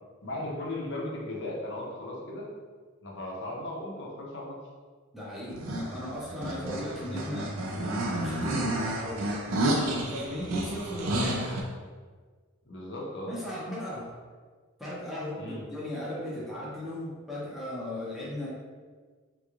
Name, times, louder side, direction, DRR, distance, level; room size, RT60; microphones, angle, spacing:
voice 1, 0.2-2.5 3.0-4.6 12.7-13.3 15.4-15.6, left 1 dB, 55° left, -3 dB, 0.6 m, -36 dB
voice 2, 5.1-11.7 13.2-14.1 14.8-18.5, left 1 dB, ahead, -8 dB, 0.6 m, -37 dB
sound 1, 5.5-11.6, right 1 dB, 70° right, 0.5 m, -31 dB
3.6 x 3.0 x 2.4 m, 1.5 s
head